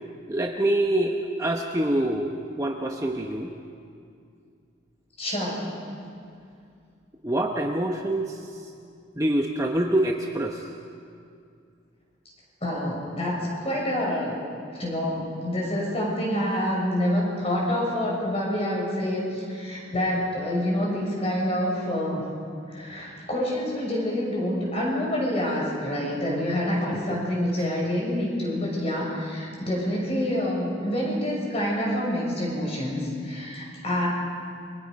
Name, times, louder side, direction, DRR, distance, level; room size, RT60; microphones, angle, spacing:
voice 1, 0.3-3.5 7.2-8.7 9.2-10.7 26.9-27.2, right 1 dB, 15° right, 2 dB, 0.9 m, -26 dB
voice 2, 5.2-5.6 12.6-13.4 13.6-14.4 14.7-22.2 22.7-34.1, left 1 dB, 30° left, -3 dB, 6.3 m, -27 dB
30.0 x 23.0 x 5.3 m, 2.4 s
head